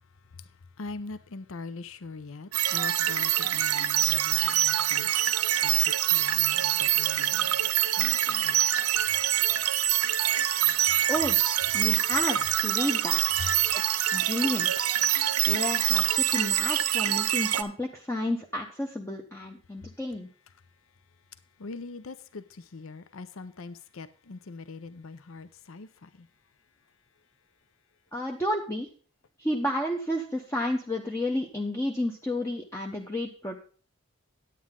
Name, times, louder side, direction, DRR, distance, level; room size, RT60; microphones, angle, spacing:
voice 1, 0.8-7.7 8.0-8.6 13.4-13.5 21.6-26.3, left 3 dB, 65° left, 0.6 m, -42 dB
sound 1, 2.5-17.6, right 11 dB, 85° right, 0.7 m, -25 dB
voice 2, 11.7-13.4 13.7-14.7 15.5-20.3 28.1-28.9 29.4-33.6, left 1 dB, 15° left, 0.8 m, -31 dB
9.7 x 9.4 x 3.7 m
head